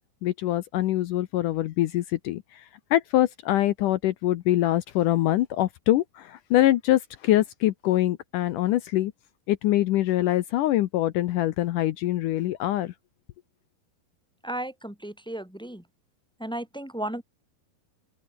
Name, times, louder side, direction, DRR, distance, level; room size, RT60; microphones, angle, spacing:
voice 1, 0.2-2.6 2.9-9.1 9.5-12.9, left 14 dB, 75° left, 2.0 m, -24 dB
voice 2, 14.4-15.8 16.4-17.2, right 1 dB, ahead, 3.5 m, -34 dB
open air
omnidirectional pair, 4.4 m